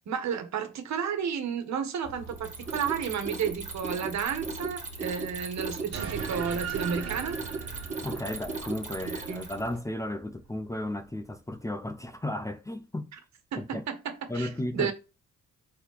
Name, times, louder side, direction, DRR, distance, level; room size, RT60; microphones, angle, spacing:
voice 1, 0.1-7.4 9.0-9.4 13.5-14.9, right 7 dB, 65° right, 1.6 m, -32 dB
sound 1, 2.0-9.8, right 1 dB, 80° left, 2.3 m, -47 dB
Mechanisms, 2.3-9.7, right 4 dB, 25° right, 2.1 m, -37 dB
sound 2, 5.9-10.7, right 7 dB, 50° right, 1.7 m, -39 dB
voice 2, 8.0-13.1 13.6-13.9 14.3-14.9, left 1 dB, 10° left, 0.7 m, -34 dB
4.6 x 4.4 x 5.0 m
cardioid pair, 90°, 30 cm